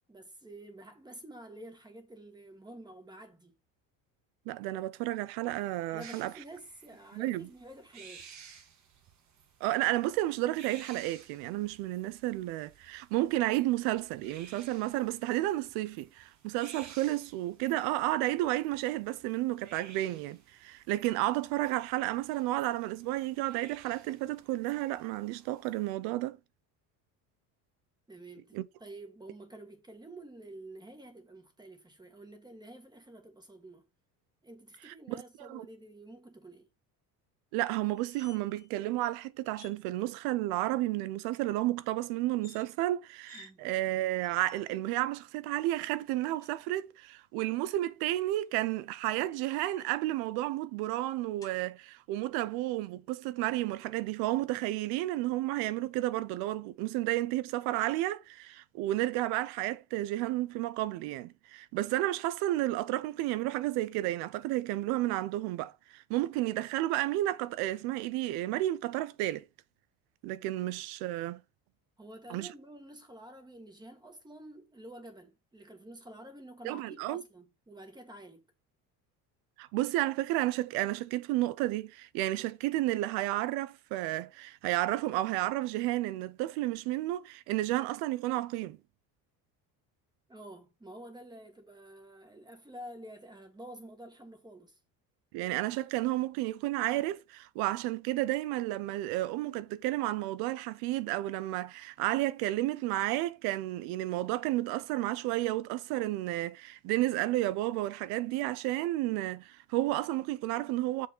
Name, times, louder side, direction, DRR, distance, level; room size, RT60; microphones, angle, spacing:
voice 1, 0.1-3.5 5.9-8.3 28.1-33.9 34.4-36.7 43.3-43.6 72.0-78.4 90.3-94.8, right 1 dB, 10° right, 1.7 m, -49 dB
voice 2, 4.5-6.3 7.1-7.5 9.6-26.4 28.5-28.7 34.9-35.0 35.4-35.7 37.5-69.5 70.2-71.4 72.3-72.5 76.6-77.2 79.6-88.8 95.3-111.1, right 16 dB, 85° right, 0.7 m, -32 dB
sound 1, 6.0-25.9, right 7 dB, 50° right, 1.8 m, -56 dB
sound 2, 37.8-38.7 39.0-39.1 39.5-39.8 42.3-42.7 43.3-43.5 44.2-44.8 45.8-46.6 48.5-50.1 51.4-51.6, left 6 dB, 10° left, 1.6 m, -58 dB
6.9 x 5.0 x 4.4 m
cardioid pair, 120°, 37 cm